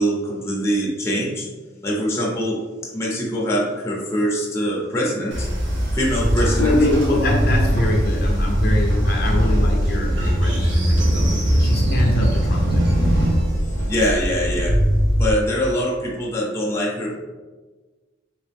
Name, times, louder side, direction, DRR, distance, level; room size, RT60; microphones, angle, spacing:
voice 1, 0.0-1.5 1.8-5.5 5.9-6.8 13.9-14.8 15.2-17.1, equal, 15° left, -4 dB, 0.7 m, -23 dB
Train, 5.3-15.3, equal, 75° right, 0.8 m, -20 dB
voice 2, 6.5-11.3 11.5-12.9, left 1 dB, 55° left, 0 dB, 0.5 m, -24 dB
3.4 x 2.8 x 3.4 m, 1.3 s
head